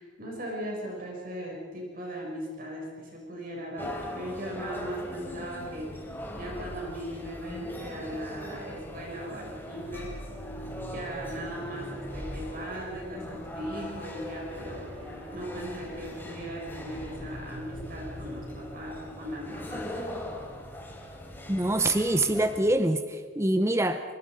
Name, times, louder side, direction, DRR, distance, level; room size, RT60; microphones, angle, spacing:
voice 1, 0.0-5.9 6.3-10.1 10.8-14.8 15.3-19.9, equal, 50° right, -1 dB, 6.3 m, -38 dB
sound 1, 3.8-22.6, left 1 dB, 10° left, 3.7 m, -41 dB
sound 2, 9.7-19.4, equal, 70° right, 7.3 m, -44 dB
voice 2, 21.5-24.0, right 1 dB, 15° right, 8 dB, 0.7 m, -25 dB
26.0 x 24.5 x 5.1 m, 1.5 s
head